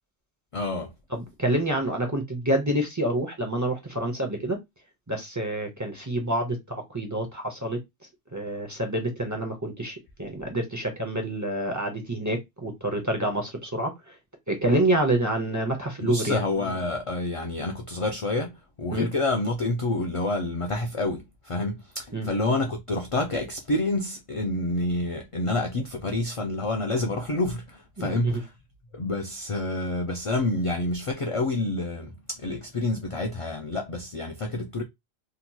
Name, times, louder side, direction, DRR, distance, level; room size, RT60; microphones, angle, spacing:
voice 1, 0.5-0.9 16.0-28.5 28.9-34.8, left 2 dB, 50° left, 0.4 m, -28 dB
voice 2, 1.1-4.6 5.1-7.8 8.3-14.2 14.5-16.4 18.9-19.1 22.1-22.3 28.0-28.4, right 1 dB, 20° right, 0.6 m, -27 dB
2.9 x 2.7 x 2.2 m
omnidirectional pair, 1.0 m